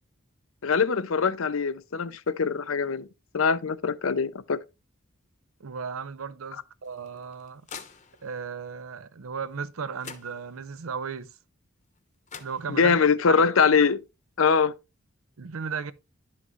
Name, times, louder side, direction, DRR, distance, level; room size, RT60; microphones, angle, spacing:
voice 1, 0.6-3.1 3.3-4.6 12.7-14.0 14.4-14.7, left 5 dB, 75° left, 0.6 m, -23 dB
voice 2, 5.6-7.6 8.2-11.3 12.4-12.9 13.3-13.4 15.4-15.9, right 6 dB, 80° right, 0.6 m, -35 dB
sound 1, 6.8-8.5 9.6-9.7 10.0-10.8 12.0-12.1 12.3-13.1, left 6 dB, 35° left, 0.9 m, -46 dB
11.0 x 5.8 x 3.1 m
head